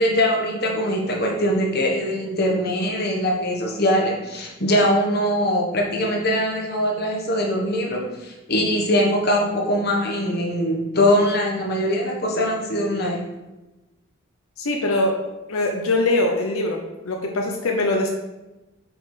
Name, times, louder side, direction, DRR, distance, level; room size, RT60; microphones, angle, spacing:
voice 1, 0.0-13.2, equal, 50° left, 0 dB, 1.4 m, -22 dB
voice 2, 14.6-15.2 15.5-18.1, left 2 dB, 85° left, 1 dB, 0.8 m, -22 dB
6.1 x 4.9 x 4.8 m, 1.1 s
head